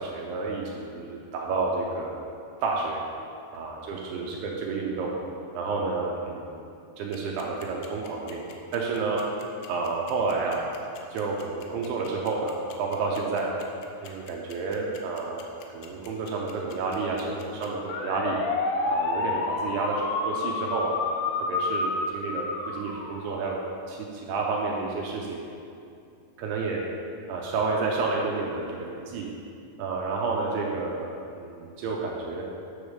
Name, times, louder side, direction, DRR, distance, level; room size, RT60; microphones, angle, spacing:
voice 1, 0.0-2.2 2.6-3.0 3.5-5.2 5.5-6.6 7.0-8.4 8.7-9.2 9.7-10.6 11.1-13.5 14.0-18.4 18.9-21.0 21.5-22.5 22.7-23.6 23.9-25.5 26.4-26.8 27.3-29.3 29.8-32.4, right 4 dB, 80° right, -2 dB, 2.5 m, -30 dB
sound 1, 7.1-23.6, left 3 dB, 85° left, 2.8 m, -30 dB
9.5 x 3.4 x 6.2 m, 2.5 s
omnidirectional pair, 5.1 m